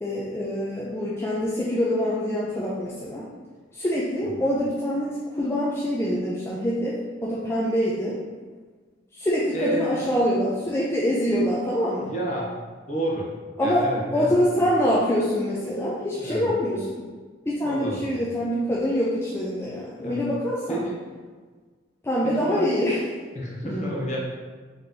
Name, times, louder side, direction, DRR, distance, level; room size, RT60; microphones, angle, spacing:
voice 1, 0.0-3.2 3.7-8.2 9.2-12.1 13.6-16.8 17.5-20.8 22.0-23.0 23.6-23.9, equal, 15° left, -6 dB, 0.4 m, -25 dB
voice 2, 9.5-10.1 12.1-12.5 12.9-13.3 13.6-14.7 16.1-16.6 17.6-18.3 20.0-20.2 20.7-21.0 22.2-22.7 23.3-24.2, right 1 dB, 40° left, -3 dB, 0.8 m, -30 dB
3.6 x 2.9 x 3.7 m, 1.5 s
head